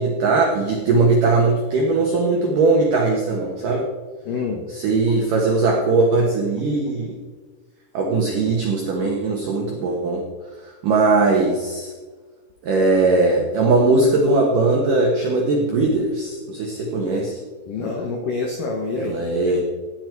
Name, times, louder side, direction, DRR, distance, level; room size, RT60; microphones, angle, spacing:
voice 1, 0.0-3.8 4.7-7.2 7.9-10.2 10.6-11.9 12.6-17.4 19.0-19.6, right 3 dB, 75° right, -1 dB, 1.9 m, -19 dB
voice 2, 4.3-4.7 17.7-19.6, left 3 dB, 80° left, 2 dB, 1.9 m, -27 dB
17.0 x 9.7 x 4.6 m, 1.4 s
omnidirectional pair, 5.9 m